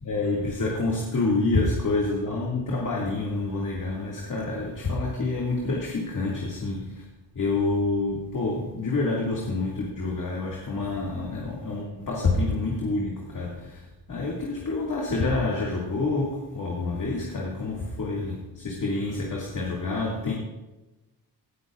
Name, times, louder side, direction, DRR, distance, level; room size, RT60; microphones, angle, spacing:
voice 1, 0.0-7.0 7.3-13.8 14.1-20.3, left 3 dB, 55° left, -3 dB, 2.3 m, -27 dB
18.0 x 11.0 x 2.5 m, 1.0 s
wide cardioid pair, 130°, 38 cm